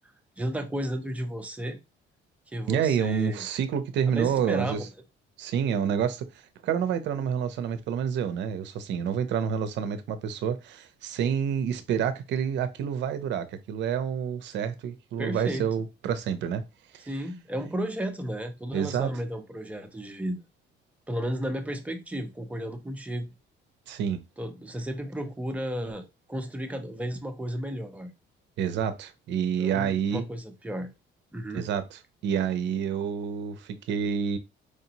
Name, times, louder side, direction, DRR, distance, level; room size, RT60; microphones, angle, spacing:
voice 1, 0.4-1.8 2.5-3.4 4.1-4.9 15.2-15.7 17.1-20.4 21.1-23.3 24.4-28.1 29.6-30.9 31.3-31.6, equal, 5° right, 0.6 m, -33 dB
voice 2, 2.7-4.8 5.4-6.3 6.6-16.6 18.7-19.1 23.9-24.2 28.6-30.2 31.5-34.4, right 8 dB, 60° right, 0.6 m, -28 dB
4.9 x 2.8 x 2.8 m
cardioid pair, 170°, 20 cm